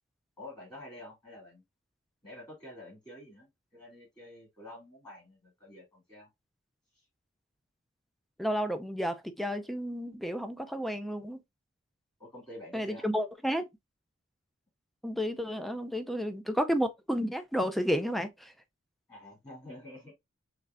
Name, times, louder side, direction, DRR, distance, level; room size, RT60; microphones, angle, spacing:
voice 1, 0.4-1.6 2.2-6.3 6.9-7.0 12.2-13.1 19.1-20.1, left 1 dB, 20° left, 2.2 m, -48 dB
voice 2, 8.4-11.4 12.7-13.7 15.0-18.5, equal, ahead, 0.4 m, -31 dB
4.7 x 3.2 x 2.4 m
head